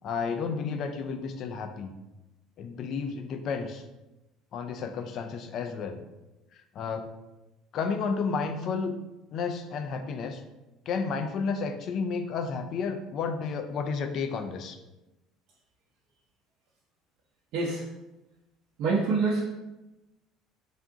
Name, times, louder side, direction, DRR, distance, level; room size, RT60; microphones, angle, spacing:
voice 1, 0.0-1.9 2.6-3.8 4.5-6.0 6.8-7.1 7.7-9.0 9.3-10.4 10.9-14.8, left 5 dB, 40° left, 6 dB, 0.3 m, -31 dB
voice 2, 17.5-17.8 18.8-19.4, right 4 dB, 55° right, -7 dB, 0.6 m, -25 dB
3.5 x 2.4 x 3.7 m, 1.0 s
cardioid pair, 170°, 0 cm